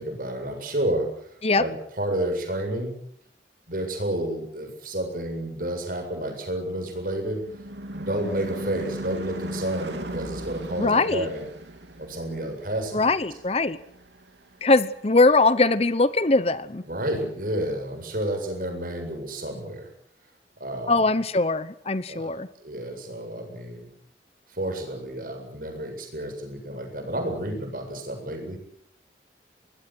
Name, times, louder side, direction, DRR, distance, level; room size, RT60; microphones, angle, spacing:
voice 1, 0.0-2.9 3.7-7.5 7.9-11.4 12.0-13.1 16.9-19.9 20.6-21.0 22.1-22.3 22.6-23.9 24.5-28.6, right 1 dB, 50° right, 5 dB, 7.7 m, -30 dB
Car passing by / Truck / Engine, 6.4-15.1, right 1 dB, 85° right, 3.2 m, -38 dB
voice 2, 10.8-11.3 12.9-13.8 14.6-16.8 20.9-22.5, left 3 dB, 35° left, 15 dB, 0.9 m, -21 dB
24.0 x 20.5 x 7.8 m, 0.65 s
head